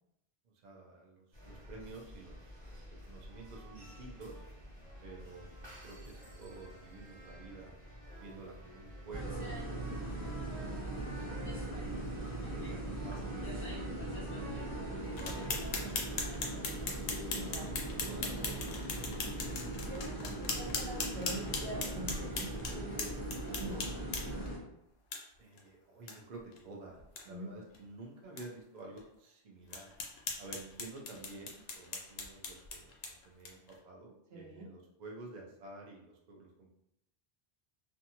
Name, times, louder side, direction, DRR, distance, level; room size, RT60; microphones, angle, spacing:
voice 1, 0.4-4.4 5.0-7.7 8.2-9.5 10.1-11.3 11.7-14.2 14.6-16.9 18.1-19.1 25.4-29.9 30.4-36.8, right 3 dB, 55° right, -1 dB, 0.5 m, -51 dB
sound 1, 1.3-15.5, equal, 30° right, 0.9 m, -51 dB
sound 2, 9.1-24.6, right 2 dB, 15° left, 0.6 m, -39 dB
sound 3, 15.2-24.5 25.1-25.2 25.6-25.7 26.1-26.2 26.5-26.6 27.0-27.2 27.7-27.8 28.4-28.5 29.0-29.1 29.7-33.7, left 4 dB, 70° left, 0.8 m, -40 dB
voice 2, 17.3-18.0 19.6-23.1 23.6-24.1 27.3-27.5 34.3-34.7, right 1 dB, 75° right, -3 dB, 1.0 m, -45 dB
2.6 x 2.3 x 2.8 m, 0.82 s
omnidirectional pair, 1.1 m